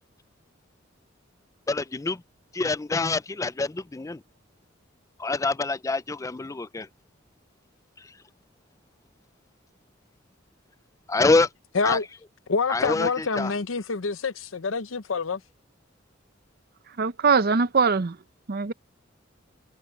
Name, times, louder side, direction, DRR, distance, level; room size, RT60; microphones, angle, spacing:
voice 1, 1.7-2.2 2.5-4.2 5.2-6.9 11.1-11.5 11.8-12.0 12.7-13.5, left 3 dB, 15° left, 0.4 m, -25 dB
voice 2, 12.5-15.4, left 4 dB, 85° left, 0.8 m, -27 dB
voice 3, 17.0-18.2 18.5-18.7, right 5 dB, 50° right, 0.6 m, -22 dB
head